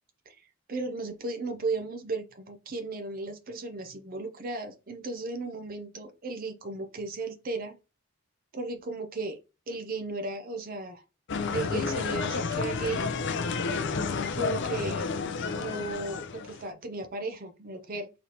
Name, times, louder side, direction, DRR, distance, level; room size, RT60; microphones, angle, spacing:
voice 1, 0.7-7.8 8.5-9.4 9.7-11.0 11.5-13.0 14.4-15.1 15.6-18.1, right 3 dB, 45° right, 0.6 m, -35 dB
sound 1, 11.3-16.7, left 4 dB, 60° left, 0.5 m, -31 dB
4.0 x 3.2 x 2.9 m
head